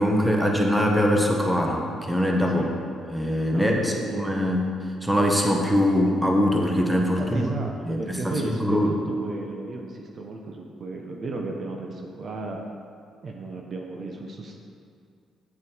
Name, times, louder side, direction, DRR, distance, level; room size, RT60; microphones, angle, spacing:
voice 1, 0.0-2.6 3.1-4.7 5.0-7.5 7.9-8.9, equal, 5° right, 0 dB, 1.4 m, -22 dB
voice 2, 2.4-2.8 3.5-4.3 7.2-12.6 13.2-14.6, right 3 dB, 50° right, 1 dB, 1.2 m, -34 dB
9.3 x 8.5 x 4.7 m, 2.3 s
cardioid pair, 90°, 0 cm